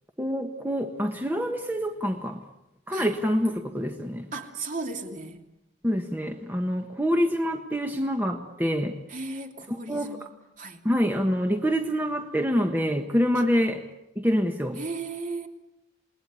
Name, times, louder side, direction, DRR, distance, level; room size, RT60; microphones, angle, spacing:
voice 1, 0.2-2.4 2.9-4.3 5.8-9.0 9.9-10.2 10.8-13.8 14.2-14.8, equal, 10° right, 4 dB, 1.3 m, -26 dB
voice 2, 4.3-5.4 9.1-10.8 13.3-13.4 14.8-15.5, right 3 dB, 40° right, 3 dB, 3.0 m, -36 dB
28.5 x 20.0 x 9.7 m, 0.93 s
head